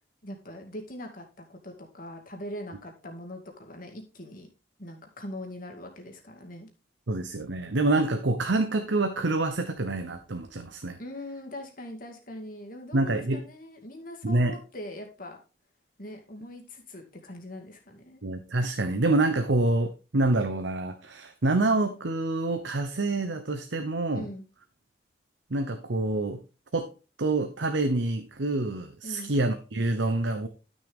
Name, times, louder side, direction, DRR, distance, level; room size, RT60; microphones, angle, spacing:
voice 1, 0.2-1.2 1.5-4.5 4.8-6.7 11.0-15.4 16.0-18.2 24.1-24.4 29.0-29.3, left 1 dB, 50° left, 3 dB, 2.2 m, -41 dB
voice 2, 7.1-11.0 12.9-13.4 14.2-14.5 18.2-24.3 25.5-26.4 26.7-26.9 27.2-30.5, right 2 dB, 85° right, 7 dB, 0.9 m, -27 dB
12.0 x 6.6 x 3.6 m, 0.32 s
head